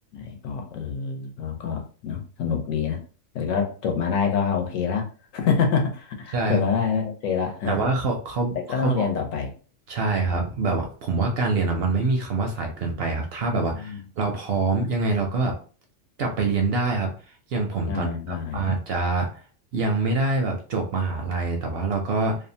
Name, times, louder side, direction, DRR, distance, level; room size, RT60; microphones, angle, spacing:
voice 1, 0.1-3.0 3.3-5.1 5.3-7.8 8.7-9.5 13.7-14.0 17.9-18.7, left 6 dB, 80° left, 4 dB, 1.1 m, -26 dB
voice 2, 7.7-9.1 9.9-15.6 16.2-18.1 18.5-19.4 19.7-22.4, right 3 dB, 65° right, 2 dB, 0.7 m, -25 dB
2.7 x 2.1 x 2.6 m, 0.38 s
omnidirectional pair, 1.3 m